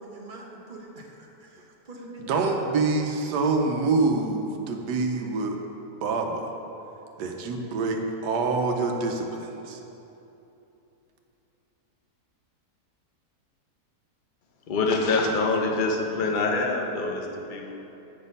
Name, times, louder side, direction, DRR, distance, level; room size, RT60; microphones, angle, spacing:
voice 1, 0.0-2.6, right 2 dB, 40° right, -1 dB, 0.8 m, -43 dB
voice 2, 2.2-5.6 6.0-6.5 7.2-9.8, right 3 dB, 80° right, 3 dB, 1.3 m, -26 dB
voice 3, 14.7-17.8, left 3 dB, 55° left, 1 dB, 0.5 m, -25 dB
8.7 x 4.2 x 5.2 m, 2.9 s
omnidirectional pair, 1.8 m